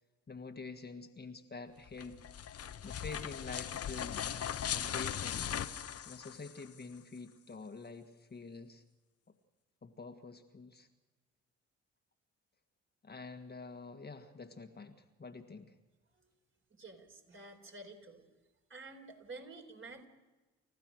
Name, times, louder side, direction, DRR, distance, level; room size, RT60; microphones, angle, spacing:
voice 1, 0.3-2.2 2.8-4.2 4.7-5.6 6.0-8.8 9.8-10.9 13.0-15.7, left 4 dB, 25° left, 6 dB, 1.7 m, -47 dB
sound 1, 1.9-6.8, left 9 dB, 45° left, 1.2 m, -39 dB
voice 2, 16.7-18.2 18.7-20.1, right 3 dB, 35° right, 4 dB, 4.3 m, -50 dB
30.0 x 15.0 x 6.4 m, 1.2 s
hypercardioid pair, 50°, 35 cm